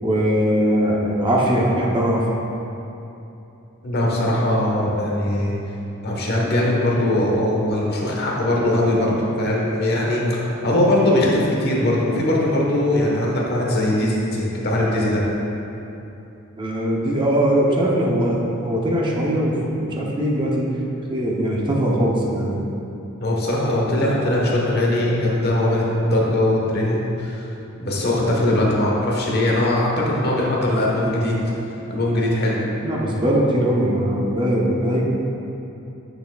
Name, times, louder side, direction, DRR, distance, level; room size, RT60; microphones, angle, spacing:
voice 1, 0.0-2.2 16.6-20.7 21.1-22.6 32.8-35.0, equal, 25° right, -3 dB, 0.8 m, -20 dB
voice 2, 3.8-5.5 6.0-15.2 23.2-27.5 27.8-31.4 31.9-32.6, left 1 dB, 50° left, -3 dB, 1.2 m, -20 dB
8.7 x 6.7 x 2.4 m, 2.9 s
head